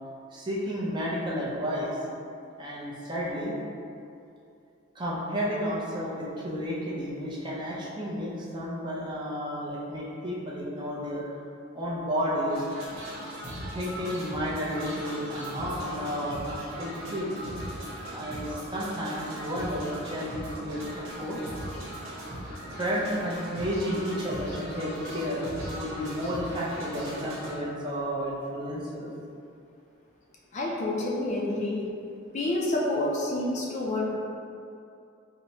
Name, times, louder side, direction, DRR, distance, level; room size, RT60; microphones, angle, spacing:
voice 1, 0.3-2.0 2.6-3.5 4.9-11.3 11.7-12.6 13.7-17.3 18.1-20.8 21.2-21.4 22.8-29.1, equal, 20° right, -6 dB, 0.5 m, -32 dB
sound 1, 12.5-27.5, equal, 90° right, 1.0 m, -39 dB
voice 2, 30.5-31.9 32.3-34.2, left 2 dB, 35° left, -3 dB, 0.3 m, -28 dB
4.5 x 2.0 x 2.8 m, 2.6 s
head